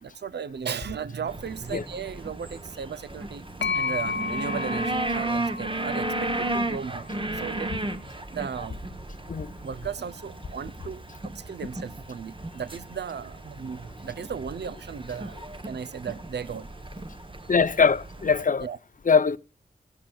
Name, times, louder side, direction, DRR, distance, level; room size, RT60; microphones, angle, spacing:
voice 1, 0.0-3.5 3.7-7.1 7.3-7.7 8.3-8.8 9.6-11.0 11.3-15.4 15.6-16.7 18.6-18.8, right 7 dB, 70° right, 0.6 m, -35 dB
sound 1, 1.3-18.4, right 2 dB, 30° right, 1.0 m, -34 dB
sound 2, 3.6-7.4, left 4 dB, 90° left, 1.2 m, -33 dB
voice 2, 17.5-18.7 19.0-19.4, left 5 dB, 50° left, 0.6 m, -22 dB
17.0 x 16.0 x 2.3 m
wide cardioid pair, 100°, 18 cm